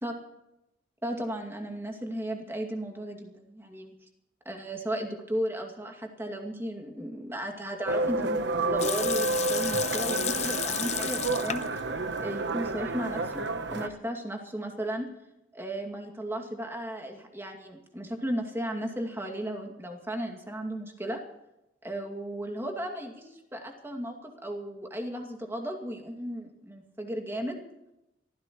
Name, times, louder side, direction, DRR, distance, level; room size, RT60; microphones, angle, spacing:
voice 1, 1.0-3.9 4.4-11.6 12.2-13.4 13.7-15.1 15.5-21.2 21.8-27.6, right 1 dB, 15° right, 2 dB, 2.4 m, -35 dB
sound 1, 7.9-13.9, right 2 dB, 65° right, 1.0 m, -30 dB
Water tap faucet / Sink (filling or washing) / Liquid, 8.8-11.8 12.1-12.2 12.9-13.5, left 10 dB, 35° left, 0.7 m, -33 dB
24.5 x 15.0 x 3.2 m, 0.90 s
head